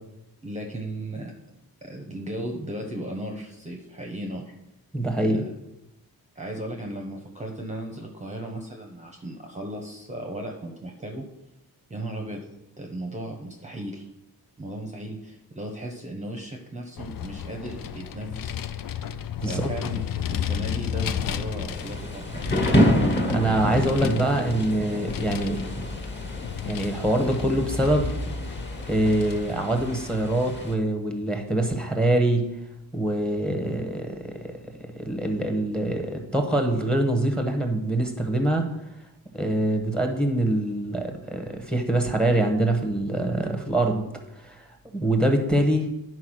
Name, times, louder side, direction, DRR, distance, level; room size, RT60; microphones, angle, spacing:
voice 1, 0.4-1.3 1.8-4.5 5.2-5.4 6.4-11.3 11.9-12.5 12.8-14.1 14.6-18.6 19.4-22.6, right 1 dB, 20° right, 1 dB, 0.8 m, -36 dB
voice 2, 4.9-5.4 19.4-19.7 23.3-25.6 26.6-28.1 28.9-32.5 32.9-34.6 35.0-38.6 39.3-44.0 44.4-44.7 44.9-45.9, right 1 dB, ahead, 4 dB, 1.0 m, -24 dB
Vehicle, 17.0-30.2, left 9 dB, 60° left, 0.5 m, -33 dB
Thunder / Rain, 21.7-30.7, equal, 30° left, 1.6 m, -28 dB
10.5 x 4.6 x 6.2 m, 0.88 s
wide cardioid pair, 175°, 37 cm